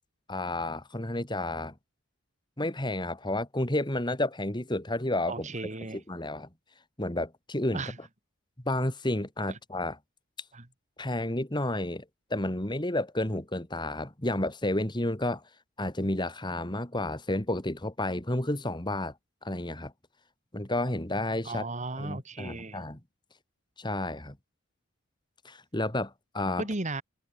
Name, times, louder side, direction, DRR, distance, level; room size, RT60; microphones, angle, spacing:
voice 1, 0.3-1.7 2.6-5.5 5.9-6.5 7.0-7.8 8.6-10.0 11.0-12.0 12.3-15.4 15.8-19.1 19.4-19.9 20.5-21.7 22.0-23.0 23.8-24.4 25.4-26.7, left 1 dB, 20° left, 2.3 m, -31 dB
voice 2, 5.3-6.0 7.7-8.0 10.5-10.7 21.5-22.9 26.6-27.0, right 2 dB, 35° right, 2.0 m, -35 dB
head